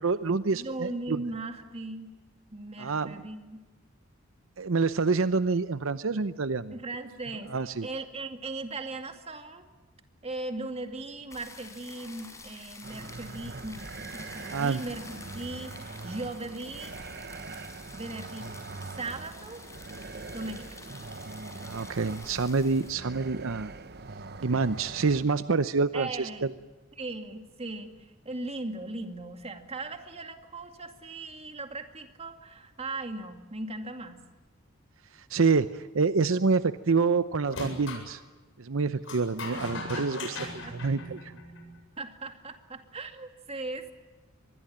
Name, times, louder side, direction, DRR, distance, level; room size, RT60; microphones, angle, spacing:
voice 1, 0.0-1.2 2.8-3.2 4.6-6.7 7.5-7.9 14.5-14.8 21.6-23.7 24.4-26.5 35.3-38.2 38.6-40.4 40.7-41.3, right 4 dB, 75° right, 13 dB, 0.7 m, -27 dB
voice 2, 0.5-2.1 2.5-3.6 6.7-7.5 7.8-9.7 10.2-15.7 16.0-16.9 17.9-18.6 19.0-19.6 20.3-20.8 25.9-26.4 27.0-34.2 39.5-40.1 40.4-40.7 42.0-43.9, right 2 dB, 30° right, 6 dB, 2.4 m, -38 dB
sound 1, 11.3-22.9, left 3 dB, 15° left, 5.3 m, -48 dB
sound 2, 12.8-25.2, right 3 dB, 50° right, 1.2 m, -42 dB
sound 3, 37.5-38.1 39.0-41.8, left 2 dB, 65° left, 7.9 m, -38 dB
25.0 x 21.0 x 8.8 m, 1.2 s
head